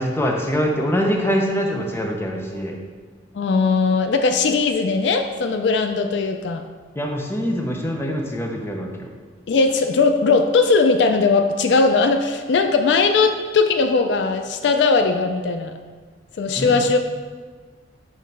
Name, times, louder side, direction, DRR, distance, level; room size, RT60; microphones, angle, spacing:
voice 1, 0.0-2.8 7.0-9.1 16.6-16.8, equal, 15° left, 1 dB, 0.6 m, -24 dB
voice 2, 3.3-6.6 9.5-15.7 16.4-17.0, left 4 dB, 65° left, 7 dB, 0.4 m, -19 dB
5.8 x 3.1 x 5.2 m, 1.5 s
head